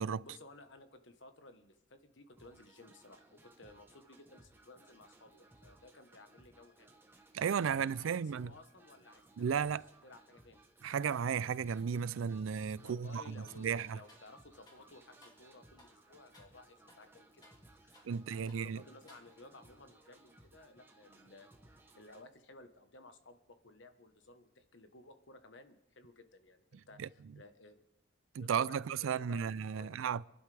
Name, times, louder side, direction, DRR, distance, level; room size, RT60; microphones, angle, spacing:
voice 1, 0.2-6.9 7.5-9.8 10.0-10.6 12.7-17.4 17.8-21.5 21.9-27.8 28.4-30.2, left 2 dB, 65° left, 1.2 m, -57 dB
sound 1, 2.4-22.2, right 2 dB, 10° right, 1.1 m, -62 dB
voice 2, 7.3-8.5 9.4-9.9 10.8-14.0 18.0-18.8 27.0-27.1 28.3-30.2, right 7 dB, 90° right, 0.4 m, -34 dB
sound 2, 12.8-13.1 13.5-14.3 14.7-14.9 15.2-15.5 15.8-16.0 16.3-16.6 16.9-18.2 18.5-18.7 19.1-19.6, left 1 dB, 20° left, 2.0 m, -63 dB
26.0 x 11.5 x 3.4 m
head